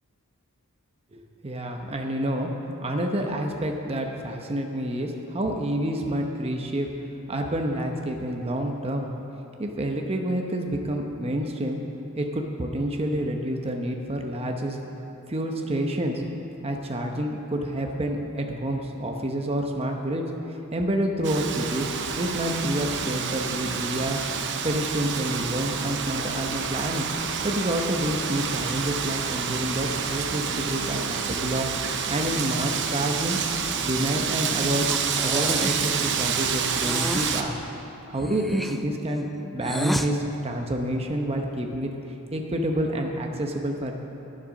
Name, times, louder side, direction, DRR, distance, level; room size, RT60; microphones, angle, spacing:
voice 1, 1.1-2.5 2.8-6.9 7.3-9.1 9.6-11.8 12.2-14.8 15.3-16.2 16.6-24.2 24.6-27.1 27.4-31.7 32.1-33.4 33.8-34.9 35.2-37.6 38.1-41.9 42.3-43.9, right 1 dB, 25° right, 2 dB, 0.8 m, -28 dB
Wind, 21.2-37.4, right 6 dB, 55° right, 0.7 m, -28 dB
Breathing, 34.8-35.9 36.7-37.4 38.1-40.1, equal, ahead, 0.3 m, -32 dB
11.0 x 10.0 x 6.3 m, 2.9 s
head